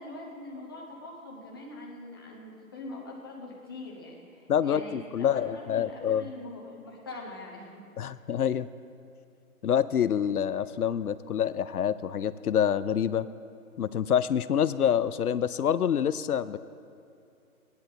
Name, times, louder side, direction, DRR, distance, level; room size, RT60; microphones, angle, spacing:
voice 1, 0.0-7.8, left 2 dB, 15° left, -3 dB, 0.9 m, -43 dB
voice 2, 4.5-6.3 8.0-8.7 9.6-13.3 13.8-16.6, left 9 dB, 80° left, 15 dB, 0.6 m, -27 dB
17.0 x 10.5 x 3.9 m, 2.5 s
hypercardioid pair, 165°, 44 cm